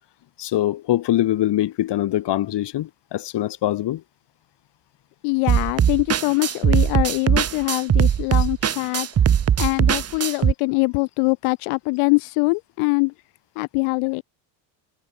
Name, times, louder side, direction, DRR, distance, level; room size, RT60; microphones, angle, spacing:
voice 1, 0.4-4.0, left 13 dB, 55° left, 5.8 m, -23 dB
voice 2, 5.2-9.1 9.6-13.1 13.6-14.2, left 31 dB, 90° left, 1.9 m, -23 dB
sound 1, 5.5-10.5, right 8 dB, 30° right, 1.4 m, -19 dB
cardioid pair, 130°, 49 cm